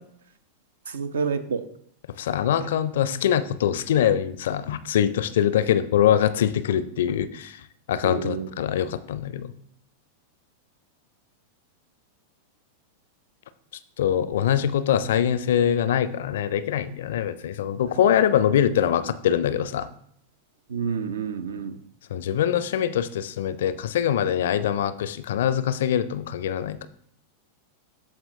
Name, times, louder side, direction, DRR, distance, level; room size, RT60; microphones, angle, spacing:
voice 1, 0.9-1.6 8.0-8.5 20.7-21.7, right 6 dB, 65° right, 12 dB, 0.5 m, -28 dB
voice 2, 2.2-9.5 14.0-19.9 22.1-26.9, left 9 dB, 60° left, 14 dB, 0.4 m, -23 dB
13.0 x 4.4 x 2.6 m, 0.67 s
figure-of-eight pair, 90°, 0 cm